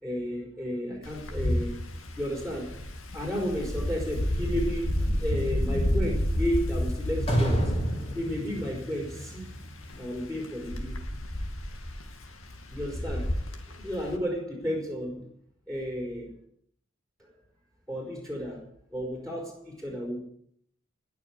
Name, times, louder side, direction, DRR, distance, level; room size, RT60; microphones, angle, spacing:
voice 1, 0.0-1.8 2.2-2.8 3.1-7.8 8.1-9.5 10.0-11.0 12.7-13.4 13.7-15.3 15.7-16.3 17.2-17.3 17.9-18.6 18.9-20.2, equal, ahead, -1 dB, 4.3 m, -33 dB
Wind, 1.0-14.2, left 1 dB, 90° left, 2.3 m, -31 dB
sound 1, 4.9-10.0, equal, 30° left, 3.9 m, -32 dB
19.5 x 6.6 x 9.6 m, 0.67 s
head